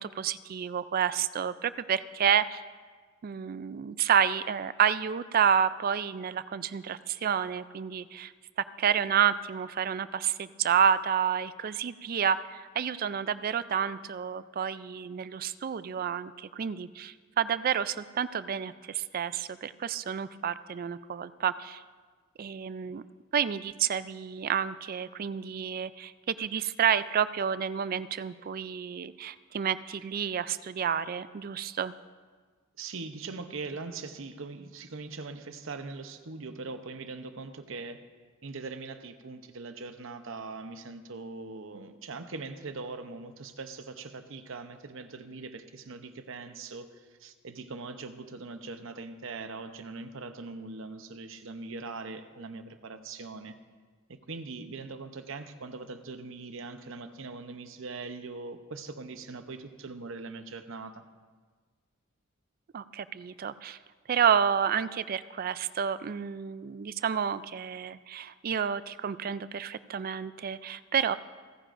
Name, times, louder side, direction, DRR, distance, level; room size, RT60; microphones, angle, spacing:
voice 1, 0.0-2.6 3.2-8.3 8.8-21.8 22.4-23.0 23.3-31.9 62.7-63.8 64.1-71.2, right 8 dB, 45° right, 15 dB, 0.3 m, -29 dB
voice 2, 32.8-38.0 38.4-53.6 54.1-61.0, right 3 dB, 65° right, 9 dB, 0.8 m, -41 dB
28.0 x 9.9 x 2.6 m, 1.5 s
head